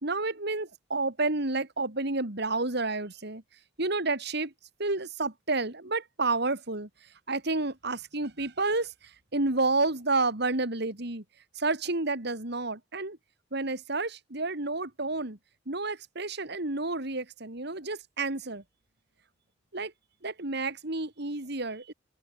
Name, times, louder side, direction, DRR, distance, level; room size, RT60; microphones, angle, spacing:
voice 1, 0.0-3.4 3.8-4.5 4.8-6.9 7.3-8.9 9.3-11.2 11.6-13.2 13.5-15.4 15.7-18.6 19.7-19.9 20.2-21.9, right 3 dB, 60° right, 3.0 m, -30 dB
head